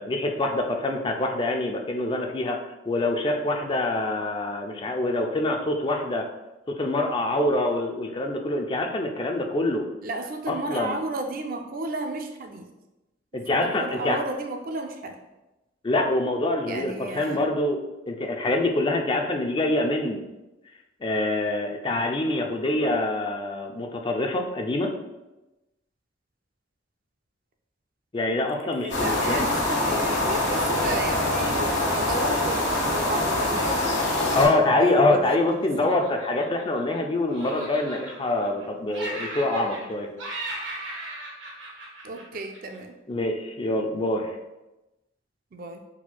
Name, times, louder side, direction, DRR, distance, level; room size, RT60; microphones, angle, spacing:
voice 1, 0.0-6.3 6.8-9.9 10.5-10.9 13.3-14.2 15.8-20.2 21.0-24.9 28.1-29.5 34.3-40.1 43.1-44.3, left 2 dB, 25° left, 3 dB, 0.4 m, -25 dB
voice 2, 10.0-12.7 13.5-15.2 16.7-17.4 28.4-31.6 31.9-33.8 34.4-35.9 42.0-42.9 45.5-45.8, right 2 dB, 50° right, 4 dB, 0.5 m, -33 dB
sound 1, 28.9-34.5, left 1 dB, 70° left, 1.3 m, -24 dB
Laughter, 35.7-37.0 37.3-38.6 38.9-39.9 40.2-42.8, right 2 dB, 85° right, 1.3 m, -37 dB
4.4 x 4.2 x 2.2 m, 1.0 s
head